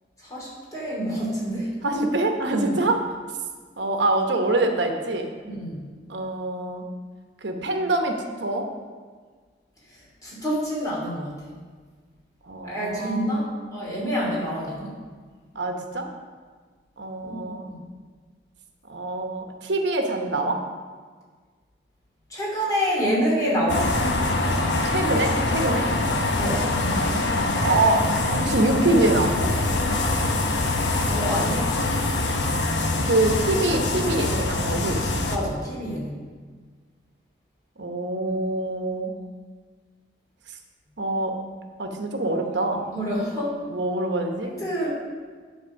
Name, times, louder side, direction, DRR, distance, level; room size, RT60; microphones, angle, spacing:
voice 1, 0.2-1.7 2.5-2.8 5.4-5.8 9.9-11.5 12.6-14.9 17.2-17.8 22.3-24.2 26.4-26.7 31.1-31.6 35.3-36.2 42.9-43.6 44.4-44.9, equal, 20° left, -5 dB, 2.8 m, -27 dB
voice 2, 1.8-3.0 3.8-5.3 6.1-6.8 7.4-8.7 12.5-13.5 15.5-16.1 17.0-17.7 18.9-20.6 24.8-25.9 26.8-27.2 27.6-28.0 28.3-29.5 33.0-35.0 37.8-39.1 41.0-41.3 41.8-42.8 43.7-44.5, right 2 dB, 90° right, 4 dB, 1.0 m, -25 dB
sound 1, 23.7-35.4, left 2 dB, 85° left, 0.9 m, -24 dB
10.5 x 4.2 x 6.3 m, 1.5 s
head